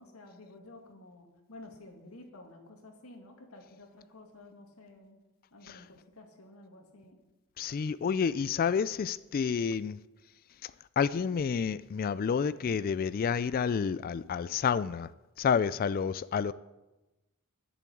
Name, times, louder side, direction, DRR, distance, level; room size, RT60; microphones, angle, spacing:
voice 1, 0.0-5.2 5.5-7.2, left 2 dB, 75° left, 2.1 m, -52 dB
voice 2, 7.6-10.0 10.6-10.7 11.0-15.1 15.4-16.5, left 6 dB, 40° left, 0.3 m, -29 dB
11.5 x 7.0 x 8.5 m
head